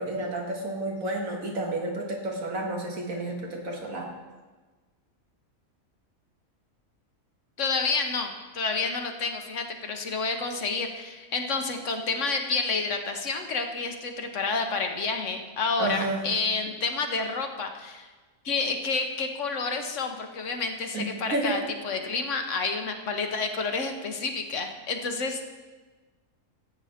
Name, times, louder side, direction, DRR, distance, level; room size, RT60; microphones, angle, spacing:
voice 1, 0.0-4.1 15.8-16.3 20.9-21.6, right 2 dB, 75° right, -1 dB, 2.2 m, -31 dB
voice 2, 7.6-18.1 18.4-25.5, left 4 dB, 60° left, 5 dB, 1.3 m, -29 dB
14.5 x 8.6 x 4.3 m, 1.3 s
omnidirectional pair, 1.4 m